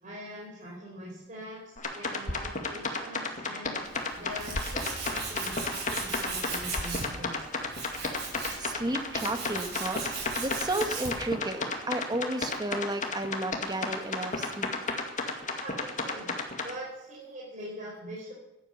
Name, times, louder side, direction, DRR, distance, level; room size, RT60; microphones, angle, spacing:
voice 1, 0.0-3.8 4.2-7.4 15.2-16.3 16.6-18.3, equal, 40° right, -5 dB, 4.6 m, -43 dB
sound 1, 1.0-7.9, left 1 dB, 70° left, 1.7 m, -45 dB
sound 2, 1.8-16.7, left 3 dB, 40° left, 2.2 m, -33 dB
Tools, 3.8-11.3, right 4 dB, 55° right, 6.6 m, -38 dB
voice 2, 8.6-14.7, right 1 dB, 20° right, 7 dB, 1.4 m, -33 dB
15.5 x 11.5 x 7.0 m, 0.93 s
head